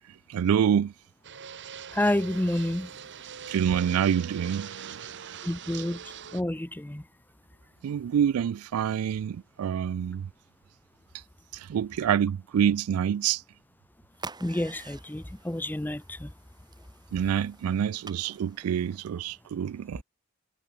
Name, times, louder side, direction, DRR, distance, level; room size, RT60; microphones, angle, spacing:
voice 1, 0.3-0.9 3.5-5.3 5.7-5.8 7.8-10.3 11.5-13.4 17.1-20.0, right 8 dB, 90° right, 0.3 m, -27 dB
Fixed-wing aircraft airplane, 1.2-6.4, right 7 dB, 60° right, 1.4 m, -42 dB
voice 2, 1.9-2.9 5.4-6.0 6.3-7.0 14.4-16.3, left 1 dB, 10° left, 0.7 m, -29 dB
sound 1, 14.1-19.3, right 4 dB, 20° right, 1.9 m, -48 dB
head